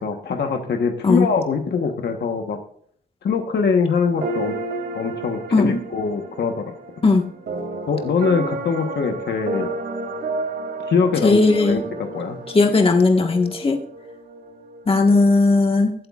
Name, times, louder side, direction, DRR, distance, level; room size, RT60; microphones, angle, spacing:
voice 1, 0.0-2.6 3.2-4.6 4.9-6.7 7.9-9.7 10.8-11.8 12.1-12.4, left 5 dB, 75° left, 4 dB, 1.2 m, -23 dB
sound 1, 4.2-15.2, right 3 dB, 85° right, 2.7 m, -31 dB
voice 2, 11.2-11.8 12.5-13.8 14.9-15.9, left 3 dB, 30° left, 2 dB, 1.5 m, -16 dB
23.0 x 8.2 x 2.4 m, 0.62 s
wide cardioid pair, 130°, 18 cm